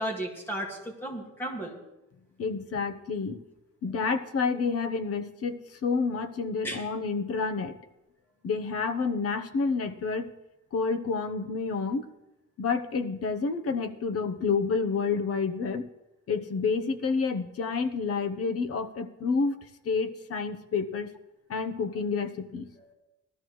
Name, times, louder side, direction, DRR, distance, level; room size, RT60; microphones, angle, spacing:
voice 1, 0.0-1.8 6.6-6.8 22.8-22.9, right 1 dB, 5° left, -1 dB, 1.9 m, -34 dB
voice 2, 2.4-3.4 3.8-7.7 8.4-10.3 10.7-12.0 12.6-15.9 16.3-19.6 19.8-21.1 21.5-22.7, left 4 dB, 50° left, 8 dB, 0.9 m, -29 dB
19.0 x 13.0 x 3.1 m, 0.94 s
wide cardioid pair, 165°, 32 cm